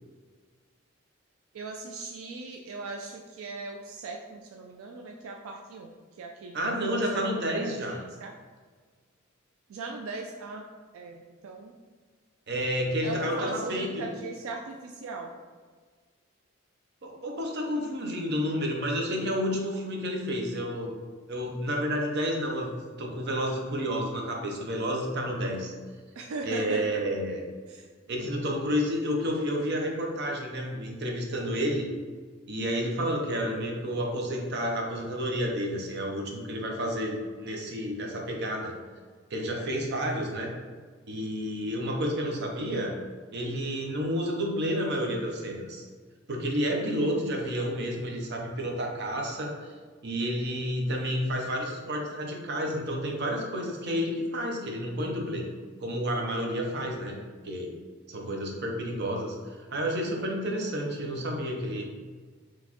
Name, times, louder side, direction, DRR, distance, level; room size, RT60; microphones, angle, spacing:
voice 1, 1.5-8.3 9.7-10.6 10.9-11.7 13.0-15.3 26.1-26.8 27.7-27.9 28.2-28.5, right 3 dB, 80° right, 2 dB, 0.3 m, -39 dB
voice 2, 6.5-8.0 12.5-14.0 17.0-20.9 21.3-22.7 23.0-25.7 26.4-27.4 28.1-31.9 32.5-38.7 39.3-40.5 41.1-42.9 43.3-45.9 46.3-49.5 50.0-55.4 55.8-57.2 57.4-57.7 58.1-61.8, equal, 55° right, 0 dB, 0.7 m, -30 dB
4.1 x 3.0 x 2.9 m, 1.5 s
head